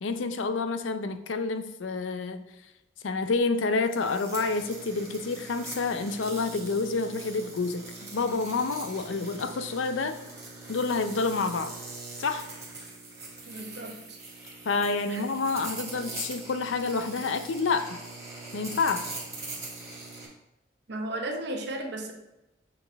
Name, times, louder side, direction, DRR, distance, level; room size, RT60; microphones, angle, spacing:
voice 1, 0.0-2.4 3.0-10.2 10.7-11.8 12.2-12.5 14.6-18.0 18.5-19.2, left 4 dB, 85° left, 10 dB, 0.5 m, -28 dB
sound 1, 3.8-20.3, right 3 dB, 20° right, 1.7 m, -42 dB
voice 2, 13.5-14.2 15.1-15.2 20.9-22.1, right 1 dB, 65° right, 2 dB, 1.0 m, -35 dB
6.7 x 4.2 x 3.4 m, 0.94 s
head